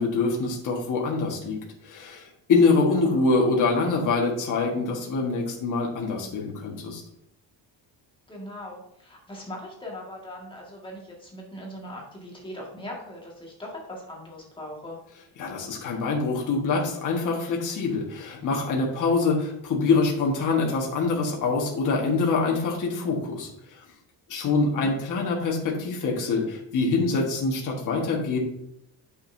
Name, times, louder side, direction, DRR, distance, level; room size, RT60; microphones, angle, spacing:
voice 1, 0.0-1.6 1.8-7.0 15.4-23.8 24.3-28.4, left 4 dB, 45° left, -1 dB, 1.6 m, -25 dB
voice 2, 2.7-3.2 8.3-15.0 24.4-24.9, left 1 dB, 10° left, -3 dB, 1.9 m, -40 dB
8.9 x 6.5 x 2.7 m, 0.75 s
cardioid pair, 180°, 41 cm